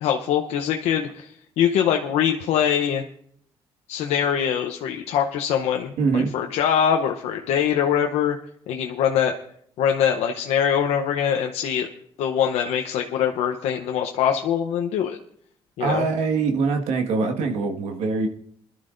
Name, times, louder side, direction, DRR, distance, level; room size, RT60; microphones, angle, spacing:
voice 1, 0.0-3.0 3.9-8.4 8.7-9.3 9.8-11.9 12.2-15.2 15.8-16.1, left 8 dB, 85° left, 3 dB, 0.8 m, -23 dB
voice 2, 6.0-6.3 15.8-18.3, right 4 dB, 85° right, 4 dB, 1.7 m, -23 dB
22.0 x 12.0 x 2.6 m, 0.68 s
cardioid pair, 75°, 11 cm